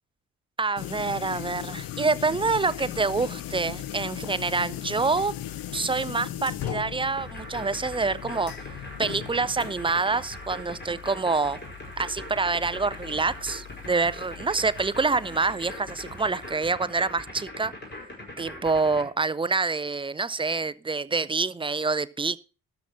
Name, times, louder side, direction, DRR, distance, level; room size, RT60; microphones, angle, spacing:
voice 1, 0.6-5.3 5.7-8.5 9.0-11.6 12.0-17.7 18.4-22.4, right 4 dB, 10° right, 0.4 m, -26 dB
sound 1, 0.8-16.5, left 11 dB, 50° left, 0.9 m, -39 dB
sound 2, 7.2-19.0, left 1 dB, 25° left, 5.2 m, -40 dB
13.0 x 5.8 x 6.0 m
figure-of-eight pair, 45°, 44 cm